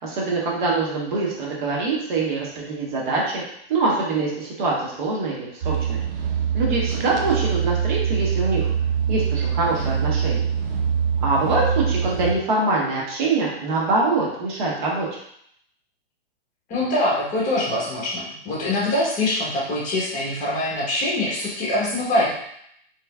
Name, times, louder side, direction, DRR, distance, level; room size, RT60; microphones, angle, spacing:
voice 1, 0.0-3.4 3.7-6.0 6.5-8.7 9.1-10.4 11.2-15.2, right 3 dB, 50° right, -4 dB, 1.1 m, -24 dB
sound 1, 5.6-12.3, right 7 dB, 65° right, 0.7 m, -24 dB
voice 2, 16.7-22.3, left 1 dB, 25° left, -6 dB, 1.1 m, -24 dB
3.3 x 3.1 x 2.3 m, 0.71 s
hypercardioid pair, 130°, 31 cm